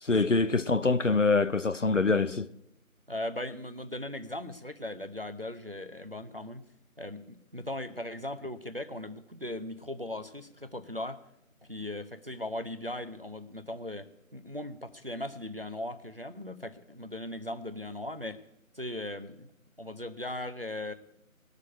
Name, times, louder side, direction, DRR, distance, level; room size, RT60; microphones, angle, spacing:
voice 1, 0.0-2.5, left 3 dB, 60° left, 0.6 m, -25 dB
voice 2, 3.1-6.6 7.0-11.2 11.7-18.4 18.7-19.5 19.8-20.9, left 1 dB, 40° right, 0.8 m, -38 dB
19.0 x 6.7 x 9.1 m
figure-of-eight pair, 180°, 42 cm